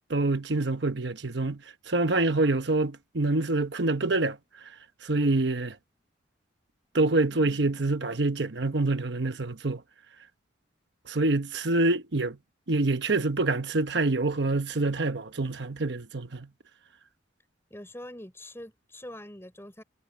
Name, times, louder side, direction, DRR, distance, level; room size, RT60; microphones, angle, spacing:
voice 1, 0.1-1.6 1.9-4.4 5.0-5.8 6.9-9.8 11.1-12.4 12.7-16.5, right 2 dB, 65° right, 1.1 m, -26 dB
voice 2, 7.3-7.6 17.7-19.8, left 1 dB, 15° left, 5.5 m, -44 dB
head